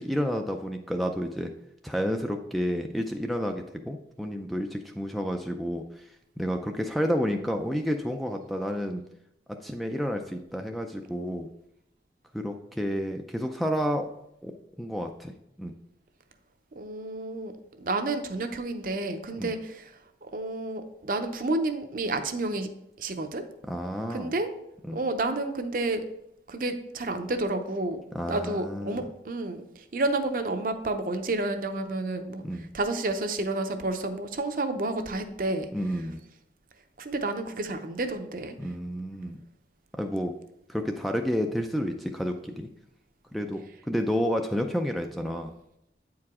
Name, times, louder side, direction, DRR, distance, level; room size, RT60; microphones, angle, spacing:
voice 1, 0.0-1.5 1.8-9.0 9.5-11.5 12.3-14.1 14.4-15.3 15.6-15.7 19.4-19.5 23.6-24.3 24.8-25.0 28.1-29.1 32.4-32.7 35.7-36.2 38.6-39.4 39.9-40.3 40.7-42.7 43.3-45.5, equal, ahead, 4 dB, 0.3 m, -30 dB
voice 2, 16.8-17.5 17.8-19.9 20.2-22.7 23.0-23.4 24.1-24.5 24.9-26.0 26.5-28.0 28.3-29.6 29.9-32.4 32.7-35.7 37.0-38.5, right 2 dB, 50° right, 7 dB, 0.6 m, -30 dB
8.5 x 4.7 x 3.6 m, 0.81 s
head